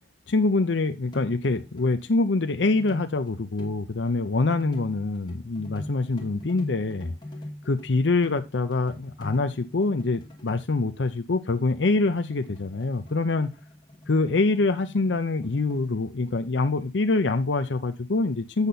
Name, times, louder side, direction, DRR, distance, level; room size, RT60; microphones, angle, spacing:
voice 1, 0.3-7.1 7.7-13.5 14.1-18.7, left 3 dB, 75° left, 0.7 m, -25 dB
sound 1, 1.1-1.9 2.4-3.9 4.5-10.6 11.9-16.0, left 1 dB, 25° left, 2.5 m, -42 dB
8.2 x 6.8 x 4.0 m
head